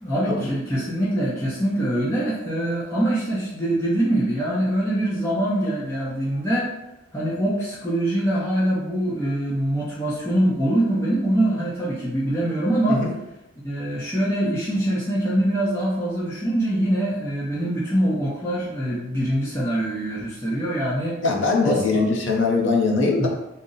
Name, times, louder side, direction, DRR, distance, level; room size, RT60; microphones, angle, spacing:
voice 1, 0.0-6.7 7.1-13.0 13.6-21.2 21.6-22.1 23.2-23.3, right 1 dB, 10° left, -8 dB, 0.6 m, -24 dB
voice 2, 21.2-23.3, left 3 dB, 60° left, 0 dB, 0.7 m, -21 dB
4.0 x 2.1 x 3.8 m, 0.90 s
head